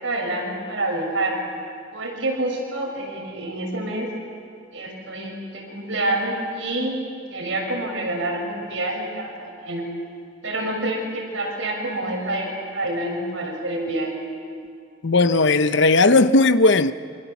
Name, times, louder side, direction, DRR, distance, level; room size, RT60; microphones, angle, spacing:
voice 1, 0.0-1.4 1.9-4.1 4.7-7.0 7.3-9.9 10.4-14.1, right 1 dB, 85° right, 6.8 m, -27 dB
voice 2, 15.0-16.9, left 3 dB, 65° left, 0.9 m, -16 dB
27.5 x 25.5 x 7.3 m
head